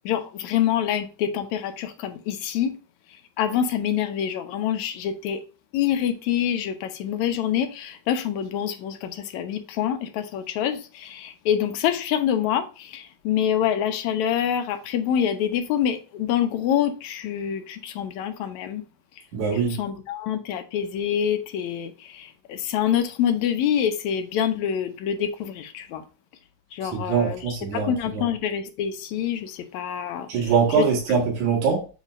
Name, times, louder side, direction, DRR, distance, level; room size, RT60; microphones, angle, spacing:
voice 1, 0.1-2.8 3.1-5.4 5.7-18.8 19.5-26.0 26.7-30.5 30.8-30.9, left 9 dB, 75° left, 1.8 m, -26 dB
voice 2, 19.3-19.8 26.8-28.2 30.3-31.9, right 6 dB, 65° right, 3.0 m, -23 dB
7.3 x 2.8 x 5.0 m
omnidirectional pair, 3.7 m